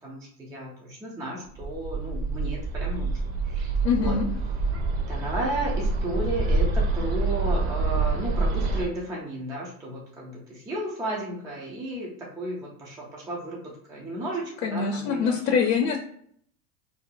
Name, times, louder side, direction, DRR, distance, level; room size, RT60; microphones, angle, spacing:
voice 1, 0.0-3.1 3.4-3.7 3.9-4.2 4.5-4.7 5.1-13.6 13.9-15.4, right 1 dB, 10° right, -3 dB, 0.4 m, -33 dB
Bird, 1.6-8.8, right 3 dB, 35° right, 0.7 m, -26 dB
voice 2, 3.8-4.2 14.6-16.0, left 6 dB, 80° left, 3 dB, 0.7 m, -24 dB
2.8 x 2.2 x 3.8 m, 0.63 s
hypercardioid pair, 115°, 48 cm